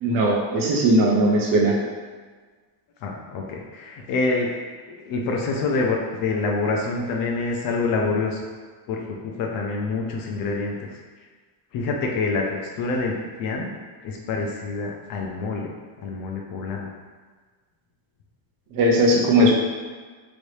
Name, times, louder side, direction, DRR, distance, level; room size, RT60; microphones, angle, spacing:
voice 1, 0.0-1.7 18.7-19.5, right 1 dB, 45° right, -2 dB, 0.6 m, -18 dB
voice 2, 3.0-4.5 5.1-8.4 8.9-10.8 11.7-12.4 12.8-13.7 14.0-15.7 16.0-16.9 19.4-19.5, left 3 dB, 50° left, 0 dB, 0.4 m, -26 dB
3.1 x 2.6 x 3.1 m, 1.5 s
cardioid pair, 175°, 47 cm